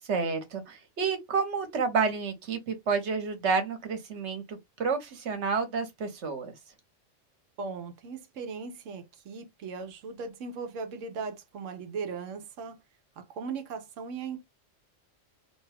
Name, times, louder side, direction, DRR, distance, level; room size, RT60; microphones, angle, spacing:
voice 1, 0.0-6.5, right 5 dB, 65° right, 1.2 m, -30 dB
voice 2, 7.6-12.8 13.2-14.5, right 5 dB, 90° right, 1.1 m, -38 dB
2.9 x 2.2 x 3.3 m
omnidirectional pair, 1.3 m